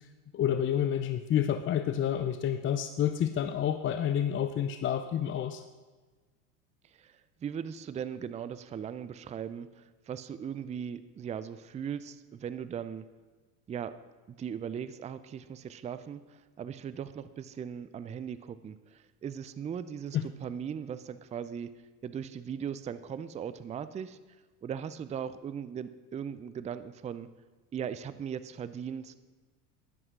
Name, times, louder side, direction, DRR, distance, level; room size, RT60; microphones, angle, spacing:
voice 1, 0.3-5.6 20.1-20.3, left 9 dB, 25° left, 10 dB, 0.6 m, -29 dB
voice 2, 6.8-13.1 13.7-14.0 14.4-21.7 22.0-24.2 24.6-27.3 27.7-29.1, right 8 dB, 15° right, 14 dB, 0.5 m, -39 dB
11.5 x 11.0 x 6.0 m, 1.3 s
hypercardioid pair, 80°, 46 cm